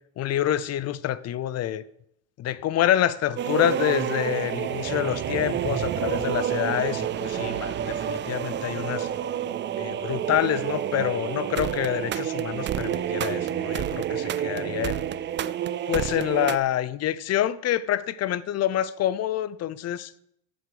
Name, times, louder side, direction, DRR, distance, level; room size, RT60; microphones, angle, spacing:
voice 1, 0.2-1.8 2.4-9.1 9.8-15.1 15.9-20.1, left 12 dB, 40° left, 0.5 m, -27 dB
sound 1, 3.4-16.6, right 10 dB, 30° right, 0.4 m, -29 dB
8.0 x 7.8 x 6.9 m
cardioid pair, 125°, 42 cm